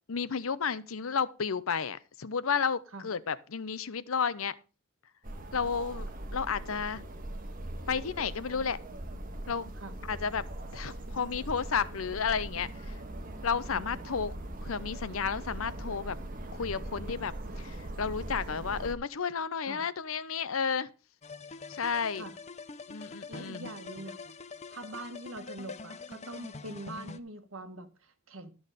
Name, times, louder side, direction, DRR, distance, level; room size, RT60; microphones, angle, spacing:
voice 1, 0.1-4.6 5.5-7.0 7.9-8.8 9.5-9.7 10.1-10.4 10.7-12.7 13.4-16.2 16.5-20.9 21.7-22.2 22.9-23.7, left 6 dB, 80° left, 0.7 m, -32 dB
sound 1, 5.2-18.9, right 1 dB, 45° right, 1.4 m, -41 dB
voice 2, 13.7-14.1 19.7-19.8 22.2-22.4 23.3-24.2 24.7-28.5, right 1 dB, 70° right, 1.7 m, -43 dB
sound 2, 21.2-27.2, left 4 dB, 35° left, 0.7 m, -45 dB
12.5 x 6.3 x 5.1 m
head